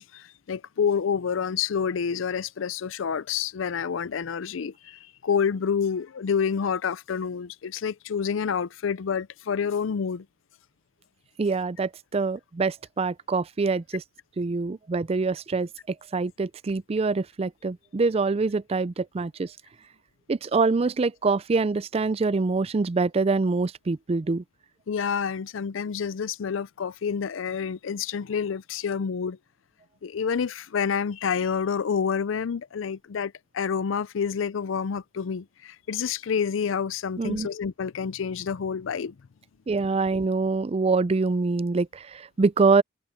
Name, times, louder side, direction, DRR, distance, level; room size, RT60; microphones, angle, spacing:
voice 1, 0.0-10.3 24.9-29.4 30.0-39.2, left 6 dB, 85° left, 0.5 m, -28 dB
voice 2, 11.4-14.0 14.4-19.5 20.3-24.4 37.2-37.5 39.7-42.8, right 4 dB, 30° right, 0.4 m, -25 dB
open air
head